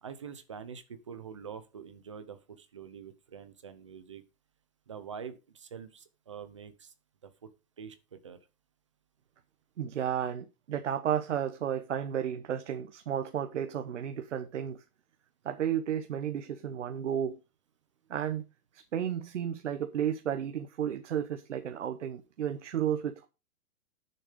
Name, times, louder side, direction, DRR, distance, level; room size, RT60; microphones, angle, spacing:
voice 1, 0.0-4.2 4.9-6.9 7.2-7.5 7.8-8.4, right 7 dB, 20° right, 0.7 m, -45 dB
voice 2, 9.8-14.8 15.4-17.4 18.1-18.4 18.9-23.3, right 9 dB, 55° right, 1.0 m, -33 dB
10.0 x 6.7 x 5.0 m
hypercardioid pair, 175°, 45 cm